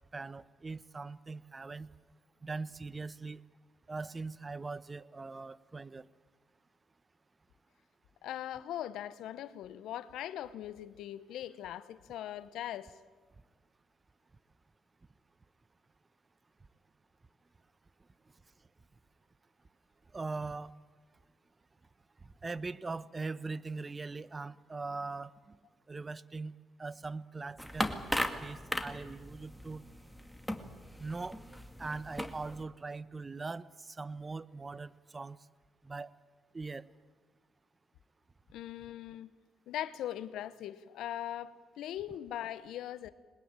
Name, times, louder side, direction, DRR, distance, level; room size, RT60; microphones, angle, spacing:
voice 1, 0.1-1.9 2.4-3.4 3.9-6.1 20.1-20.8 22.2-25.6 25.9-27.9 28.4-29.8 31.0-35.4 35.8-36.1 36.5-36.9, right 3 dB, 30° right, 0.8 m, -41 dB
voice 2, 8.2-12.9 38.5-39.3 39.7-43.1, left 12 dB, 75° left, 0.9 m, -40 dB
sound 1, 27.6-32.6, equal, ahead, 2.2 m, -38 dB
21.5 x 20.5 x 8.9 m
supercardioid pair, 55°, 0 cm